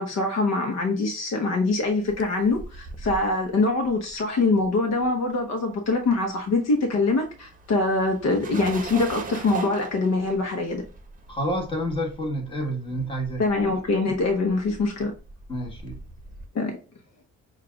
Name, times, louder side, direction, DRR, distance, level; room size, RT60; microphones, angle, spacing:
voice 1, 0.0-10.8 13.4-15.1 16.5-16.8, left 3 dB, 60° left, 0.9 m, -24 dB
sound 1, 1.8-5.5 5.7-16.5, right 3 dB, 25° right, 0.9 m, -42 dB
voice 2, 11.3-13.4 15.5-16.0, equal, 15° left, 1.4 m, -29 dB
6.5 x 2.5 x 2.3 m
cardioid pair, 90°, 30 cm